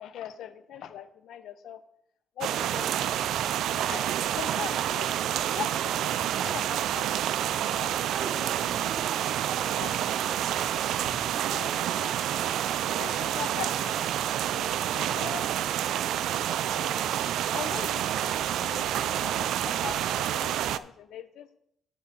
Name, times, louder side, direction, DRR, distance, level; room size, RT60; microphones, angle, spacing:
voice 1, 0.0-1.8 2.4-3.3 3.9-5.1 5.5-7.9 9.7-10.0 10.4-10.5 11.2-14.0 14.5-21.5, left 9 dB, 75° left, 12 dB, 0.7 m, -42 dB
sound 1, 2.4-20.8, right 11 dB, 80° right, 0.3 m, -28 dB
voice 2, 4.1-4.5 8.0-11.1, right 5 dB, 65° right, 6 dB, 1.5 m, -43 dB
9.8 x 3.9 x 7.2 m, 0.74 s
cardioid pair, 90°, 0 cm